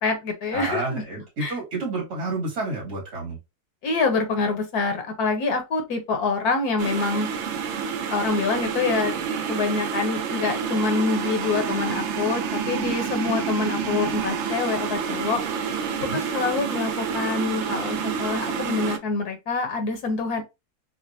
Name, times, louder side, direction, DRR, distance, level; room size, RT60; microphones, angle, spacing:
voice 1, 0.0-1.0 1.4-1.5 3.8-7.3 8.1-9.1 9.5-15.4 16.1-20.4, left 4 dB, 75° left, 1.4 m, -26 dB
voice 2, 0.5-3.4 16.0-16.2, right 2 dB, 80° right, 2.8 m, -30 dB
sound 1, 6.8-19.0, right 6 dB, 65° right, 0.7 m, -28 dB
6.4 x 2.2 x 2.6 m
omnidirectional pair, 1.7 m